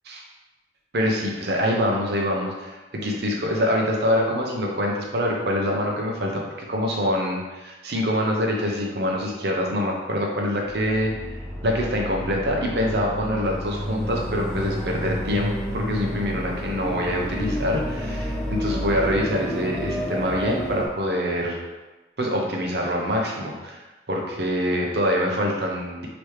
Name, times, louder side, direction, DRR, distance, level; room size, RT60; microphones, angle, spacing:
voice 1, 0.9-6.4 6.7-11.1 11.6-21.6 22.2-23.8 24.1-26.1, equal, 60° right, -1 dB, 0.8 m, -25 dB
sound 1, 10.6-20.9, equal, ahead, 0.6 m, -30 dB
3.3 x 3.0 x 4.7 m, 1.2 s
head